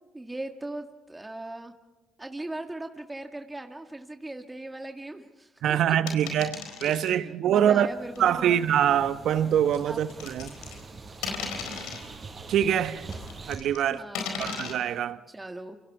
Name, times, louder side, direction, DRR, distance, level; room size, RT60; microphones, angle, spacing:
voice 1, 0.1-1.7 2.2-6.0 6.9-8.1 8.4-8.6 9.9-10.0 13.8-14.5 15.3-15.8, right 2 dB, 15° right, 4 dB, 1.9 m, -39 dB
voice 2, 5.6-7.9 8.2-10.5 12.5-13.1 13.5-14.0 14.4-15.2, right 10 dB, 65° right, 12 dB, 1.0 m, -24 dB
sound 1, 6.1-7.1 8.2-8.3 9.7-10.9 11.2-12.1 13.1-13.8 14.2-14.7, left 6 dB, 80° left, 4.3 m, -35 dB
sound 2, 7.8-13.6, right 3 dB, 40° right, 5.1 m, -43 dB
28.5 x 25.5 x 4.8 m, 1.1 s
supercardioid pair, 60°, 0 cm